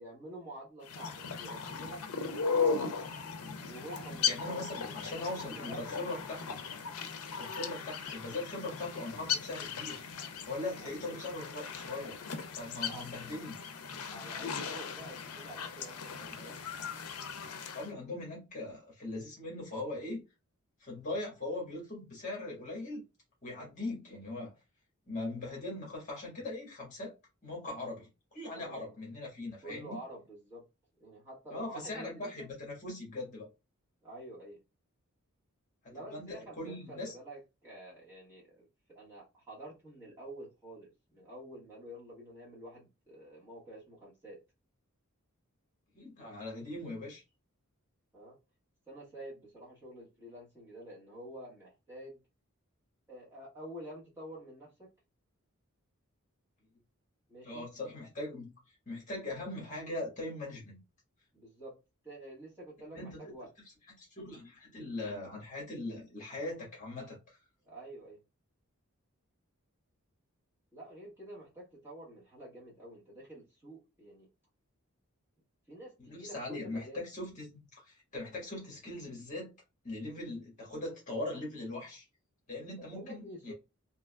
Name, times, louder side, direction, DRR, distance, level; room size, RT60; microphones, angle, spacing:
voice 1, 0.0-2.6 3.6-6.0 10.8-11.1 12.8-13.0 14.1-16.6 28.5-28.9 29.6-30.7 31.0-32.5 34.0-34.6 35.9-44.4 48.1-48.4 48.9-52.2 53.1-54.9 57.3-57.7 61.3-61.8 62.0-63.5 67.6-68.2 70.7-74.3 75.7-77.0 82.8-83.5, right 1 dB, 10° right, 1.4 m, -48 dB
sound 1, 0.8-17.9, left 5 dB, 80° left, 0.5 m, -37 dB
voice 2, 4.3-6.6 7.3-10.0 10.4-12.2 12.5-13.7 16.3-16.5 17.7-20.3 20.8-23.0 23.4-24.5 25.1-27.1 27.4-30.0 31.5-33.5 35.8-37.1 45.9-47.2 57.4-58.5 58.8-60.8 62.9-63.2 64.0-67.4 76.0-79.5 79.8-82.0 82.5-83.5, left 2 dB, 35° left, 1.5 m, -40 dB
3.6 x 2.9 x 2.2 m
head